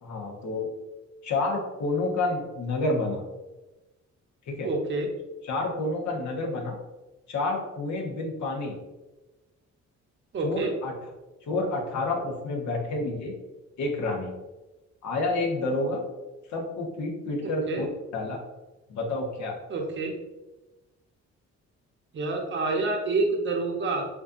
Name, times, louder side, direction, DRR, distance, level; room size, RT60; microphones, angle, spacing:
voice 1, 0.0-0.7 1.2-3.2 4.5-4.7 5.4-6.7 7.3-8.8 10.4-10.9 11.5-13.3 13.8-14.3 15.0-16.0 16.5-17.9 18.1-18.4 18.9-19.6, left 2 dB, 70° left, 0 dB, 1.3 m, -29 dB
voice 2, 4.6-5.1 10.3-10.7 17.4-17.8 19.7-20.1 22.1-24.1, right 3 dB, 40° right, 1 dB, 0.9 m, -28 dB
7.3 x 2.7 x 2.5 m, 1.1 s
cardioid pair, 90°, 30 cm